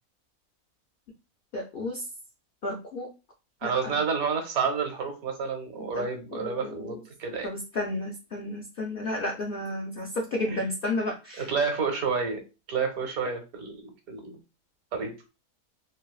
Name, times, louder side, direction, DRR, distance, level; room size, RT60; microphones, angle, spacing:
voice 1, 1.5-2.0 2.6-3.1 3.6-4.0 5.8-6.0 6.3-7.0 7.4-11.5, left 2 dB, 75° left, 0 dB, 0.5 m, -32 dB
voice 2, 3.6-7.5 10.5-10.6 11.4-12.4 12.7-14.4 14.9-15.1, right 5 dB, 75° right, 5 dB, 1.2 m, -30 dB
3.3 x 2.3 x 2.3 m, 0.29 s
omnidirectional pair, 1.6 m